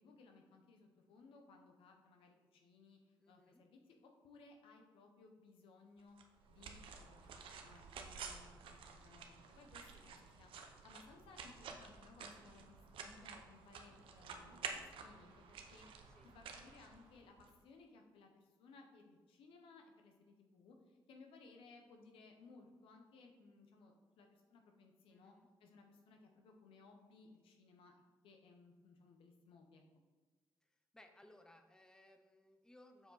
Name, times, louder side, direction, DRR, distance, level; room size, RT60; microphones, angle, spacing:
voice 1, 0.0-6.2 6.5-25.3 25.6-27.9 28.2-29.8, left 3 dB, 85° left, 3 dB, 0.9 m, -62 dB
voice 2, 3.2-3.6 16.1-16.2 25.1-25.5 30.9-33.1, left 1 dB, 10° left, 6 dB, 0.7 m, -63 dB
sound 1, 6.2-17.5, right 5 dB, 80° right, 0.7 m, -51 dB
7.0 x 4.7 x 4.0 m, 1.3 s
cardioid pair, 70°, 9 cm